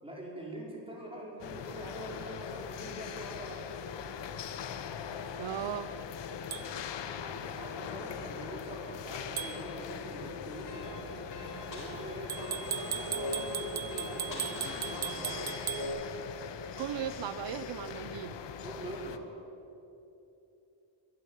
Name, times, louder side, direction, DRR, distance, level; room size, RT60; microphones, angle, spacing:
voice 1, 0.0-3.7 7.2-11.0 11.7-15.6 18.6-19.2, right 1 dB, 10° right, -3 dB, 5.4 m, -44 dB
sound 1, 1.4-19.2, left 7 dB, 75° left, 1.3 m, -41 dB
voice 2, 5.3-5.9 16.8-18.3, right 10 dB, 80° right, 12 dB, 0.8 m, -37 dB
sound 2, 6.5-6.7 9.4-9.6 12.3-15.9, right 8 dB, 60° right, 1.4 m, -36 dB
sound 3, 10.7-15.9, left 1 dB, 45° left, 5.8 m, -42 dB
22.0 x 14.0 x 9.2 m, 2.9 s
wide cardioid pair, 155°, 43 cm